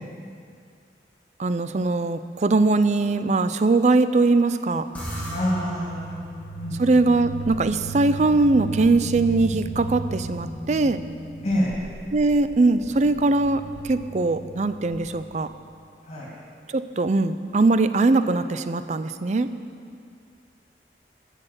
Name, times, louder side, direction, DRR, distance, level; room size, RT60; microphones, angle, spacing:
voice 1, 1.4-4.9 6.8-11.0 12.1-15.5 16.7-19.5, right 3 dB, 40° right, 12 dB, 0.4 m, -21 dB
sound 1, 5.0-15.6, right 2 dB, 10° left, 2.2 m, -35 dB
voice 2, 5.3-6.3 6.5-6.8 11.4-11.7 16.0-16.3, equal, 40° left, -5 dB, 2.7 m, -26 dB
14.0 x 6.5 x 7.5 m, 2.3 s
head